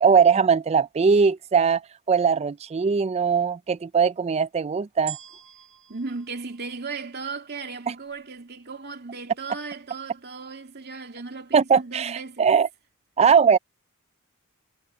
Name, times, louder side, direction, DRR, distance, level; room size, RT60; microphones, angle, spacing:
voice 1, 0.0-1.8 2.1-5.2 7.9-8.0 11.5-12.7 13.2-13.6, right 6 dB, 30° right, 0.3 m, -20 dB
sound 1, 5.1-7.5 8.1-8.2, right 12 dB, 70° right, 3.9 m, -42 dB
voice 2, 5.9-12.5, right 4 dB, 50° right, 2.7 m, -36 dB
head